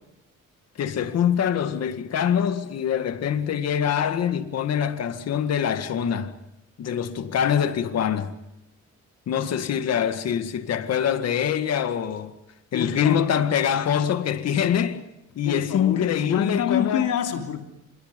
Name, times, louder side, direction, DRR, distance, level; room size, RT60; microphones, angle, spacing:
voice 1, 0.8-6.4 6.8-8.3 9.3-12.3 12.7-15.0 15.4-17.1, left 8 dB, 55° left, 1.9 m, -24 dB
voice 2, 12.7-13.2 15.4-17.7, left 9 dB, 85° left, 3.2 m, -27 dB
28.5 x 27.5 x 5.3 m
cardioid pair, 175°, 30 cm